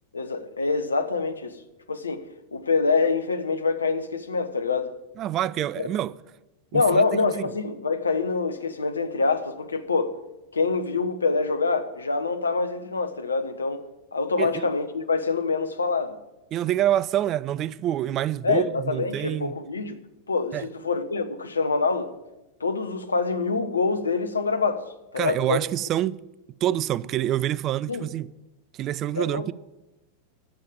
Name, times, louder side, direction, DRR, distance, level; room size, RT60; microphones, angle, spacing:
voice 1, 0.1-1.6 1.9-2.2 2.5-4.9 6.7-10.1 10.5-13.9 14.1-16.2 18.4-20.0 20.3-22.1 22.6-24.8 25.1-25.6 27.9-28.1 29.1-29.5, left 4 dB, 75° left, 1.0 m, -25 dB
voice 2, 5.2-6.1 6.7-7.0 14.4-14.6 16.5-19.6 20.5-20.7 25.2-26.2 26.6-28.3 28.8-29.5, right 12 dB, 35° right, 0.3 m, -26 dB
11.5 x 7.4 x 8.8 m
figure-of-eight pair, 90°, 0 cm